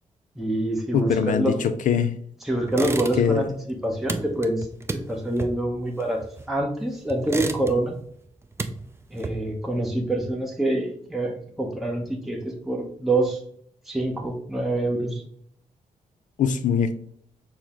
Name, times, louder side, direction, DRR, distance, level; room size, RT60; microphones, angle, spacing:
voice 1, 0.4-1.7 2.4-6.2 6.5-7.9 9.1-13.4 13.9-15.2, right 1 dB, ahead, 0.8 m, -26 dB
voice 2, 0.9-2.2 3.2-3.4 16.4-16.9, left 7 dB, 70° left, 0.4 m, -22 dB
sound 1, 2.7-3.5 3.7-6.7 7.1-8.0 8.3-9.7, right 3 dB, 20° right, 0.4 m, -32 dB
6.1 x 2.1 x 3.5 m
cardioid pair, 105°, 13 cm